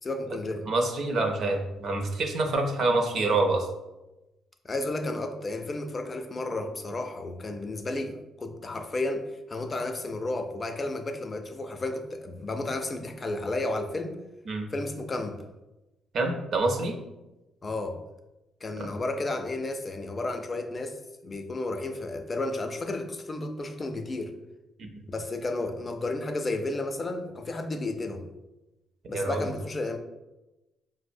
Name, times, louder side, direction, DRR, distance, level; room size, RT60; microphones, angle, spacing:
voice 1, 0.0-0.7 4.6-14.2 14.7-15.5 17.6-18.0 18.6-24.3 25.1-28.3 29.1-30.0, left 2 dB, 30° left, 6 dB, 0.4 m, -32 dB
voice 2, 0.6-3.7 14.5-14.7 16.1-17.0 18.8-18.9 24.8-25.0 29.1-29.4, right 2 dB, 60° right, 3 dB, 0.6 m, -27 dB
4.7 x 2.0 x 2.5 m, 1.0 s
cardioid pair, 90°, 0 cm